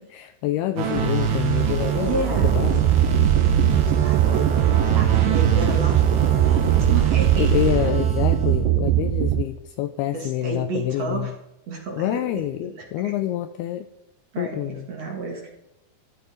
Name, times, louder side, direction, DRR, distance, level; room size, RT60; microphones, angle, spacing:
voice 1, 0.1-2.9 7.4-11.3 12.0-13.9 14.4-14.9, left 13 dB, 80° left, 10 dB, 2.3 m, -27 dB
sound 1, 0.8-8.5, right 6 dB, 70° right, 3.6 m, -24 dB
voice 2, 2.0-3.1 3.7-7.5 10.1-11.3 11.7-13.1 14.3-15.5, right 3 dB, 45° right, 1 dB, 2.5 m, -32 dB
sound 2, 2.4-9.4, right 12 dB, 85° right, 2.9 m, -20 dB
14.0 x 13.0 x 5.1 m, 0.84 s
omnidirectional pair, 5.0 m